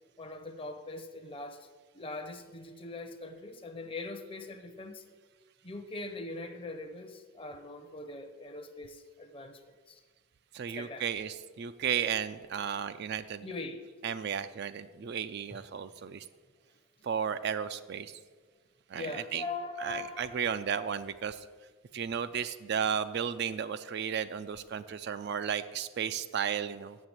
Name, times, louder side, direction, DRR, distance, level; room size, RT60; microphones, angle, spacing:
voice 1, 0.2-1.7 1.9-5.0 5.6-9.6 9.9-10.0 10.7-11.1 13.4-13.8 15.7-15.8 18.9-20.5, left 2 dB, 25° left, 8 dB, 0.7 m, -41 dB
voice 2, 10.5-13.5 14.0-16.3 17.0-18.1 18.9-19.4 19.8-21.4 21.9-27.0, right 7 dB, 50° right, 12 dB, 0.3 m, -34 dB
7.4 x 6.8 x 7.9 m, 1.5 s
head